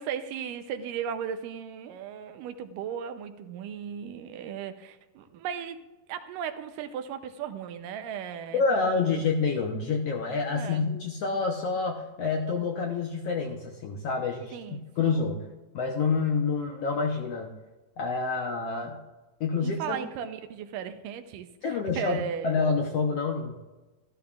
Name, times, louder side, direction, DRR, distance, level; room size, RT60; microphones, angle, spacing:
voice 1, 0.0-5.8 6.1-9.3 10.5-10.9 14.5-15.2 19.6-22.6, right 8 dB, 85° right, 9 dB, 2.3 m, -36 dB
voice 2, 8.5-15.4 15.7-17.5 18.0-19.0 19.4-20.0 21.6-22.2 22.4-23.6, left 4 dB, 70° left, 1 dB, 1.6 m, -28 dB
13.5 x 12.5 x 2.4 m, 1.1 s
omnidirectional pair, 3.9 m